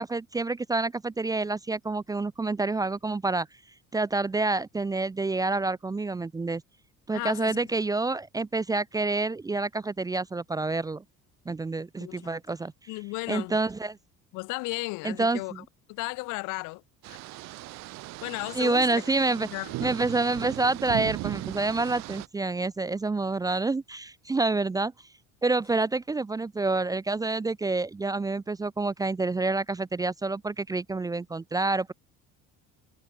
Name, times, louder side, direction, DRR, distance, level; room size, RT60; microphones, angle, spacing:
voice 1, 0.0-3.5 3.9-6.6 7.1-11.0 11.5-12.7 13.3-14.0 15.0-15.6 18.5-19.5 19.8-24.9 25.4-31.9, right 3 dB, 10° right, 0.7 m, -28 dB
voice 2, 7.1-7.6 12.0-12.3 12.9-13.6 14.3-15.6 15.9-16.8 17.1-17.2 18.2-19.0 19.4-19.9, left 26 dB, 80° left, 3.2 m, -35 dB
sound 1, 17.0-22.3, right 19 dB, 60° right, 1.1 m, -37 dB
cardioid pair, 150°, 30 cm